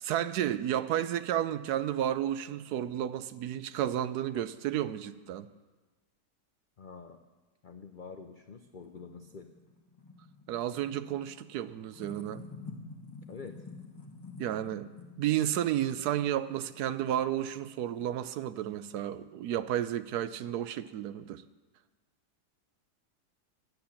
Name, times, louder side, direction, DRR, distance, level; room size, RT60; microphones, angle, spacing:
voice 1, 0.0-5.5 10.5-12.4 14.4-14.9 15.2-21.4, right 11 dB, 75° right, 14 dB, 1.1 m, -32 dB
voice 2, 6.8-7.2 7.6-9.5 13.3-13.6, left 5 dB, 80° left, 6 dB, 0.4 m, -46 dB
Parachute Opening, 8.2-18.3, left 3 dB, 15° left, 1.1 m, -50 dB
11.5 x 7.8 x 8.6 m, 1.3 s
omnidirectional pair, 1.7 m